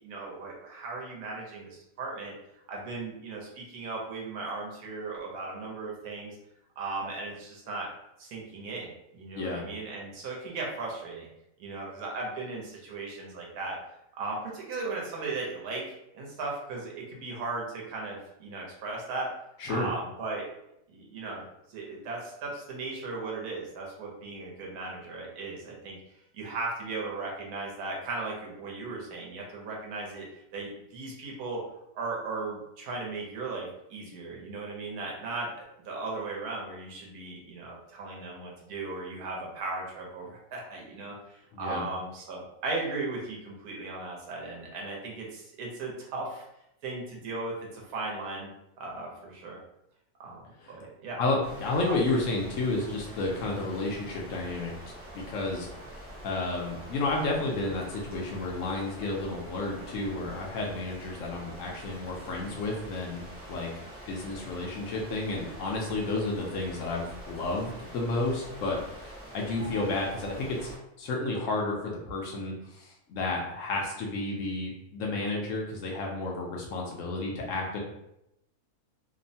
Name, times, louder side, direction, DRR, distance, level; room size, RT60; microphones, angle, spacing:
voice 1, 0.0-2.3 2.7-6.4 6.8-7.9 8.2-11.3 11.6-13.8 14.2-15.8 16.1-19.3 19.7-20.4 20.9-26.0 26.3-30.3 30.5-31.6 31.9-46.4 46.8-48.5 48.8-49.6 50.2-51.2 51.8-51.9, right 3 dB, 80° right, -2 dB, 1.2 m, -37 dB
voice 2, 41.5-41.8 50.6-50.8 51.2-54.7 55.1-55.7 56.2-63.7 64.1-70.7 71.0-77.8, left 2 dB, 70° left, -1 dB, 0.8 m, -31 dB
sound 1, 51.4-70.8, right 1 dB, 15° right, 0.4 m, -45 dB
2.9 x 2.0 x 2.6 m, 0.82 s
omnidirectional pair, 1.6 m